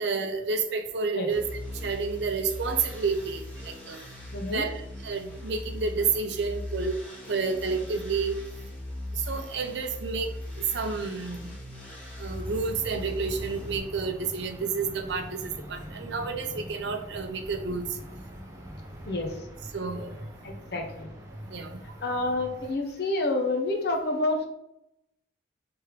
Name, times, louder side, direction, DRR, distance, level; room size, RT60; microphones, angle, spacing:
voice 1, 0.0-1.4 1.8-4.0 4.4-4.7 5.0-7.0 7.3-8.4 9.1-10.3 10.6-11.5 12.2-17.9 19.7-20.2 21.5-21.8, right 5 dB, 65° right, 7 dB, 0.5 m, -30 dB
sound 1, 1.3-13.8, left 1 dB, 10° left, 1.0 m, -39 dB
voice 2, 4.3-4.7 19.1-19.3 20.4-21.1 22.0-24.5, left 2 dB, 55° left, 3 dB, 0.8 m, -28 dB
sound 2, 12.3-22.7, equal, 15° right, 0.6 m, -43 dB
3.4 x 3.3 x 4.5 m, 0.83 s
head